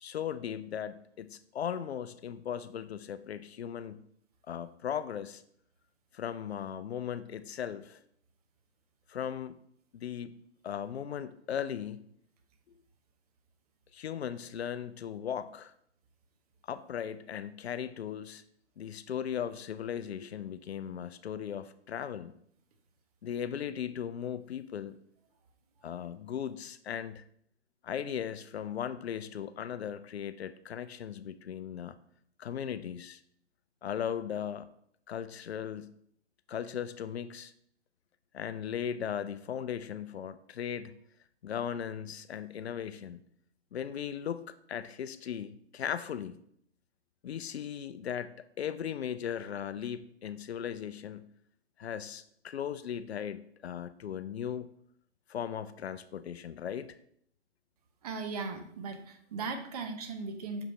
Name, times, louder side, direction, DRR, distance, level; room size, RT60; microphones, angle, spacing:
voice 1, 0.0-4.0 4.5-5.4 6.1-8.0 9.1-9.6 9.9-10.3 10.6-12.1 13.9-15.7 16.7-18.4 18.8-22.3 23.2-25.0 25.8-27.2 27.8-32.0 32.4-33.2 33.8-34.7 35.1-36.0 36.5-37.5 38.3-40.9 41.4-43.2 43.7-46.4 47.2-51.3 51.8-54.7 55.3-57.0, left 9 dB, 65° left, 13 dB, 0.5 m, -37 dB
voice 2, 58.0-60.6, right 4 dB, 35° right, 6 dB, 0.8 m, -38 dB
6.3 x 5.1 x 3.2 m, 0.68 s
figure-of-eight pair, 135°, 35 cm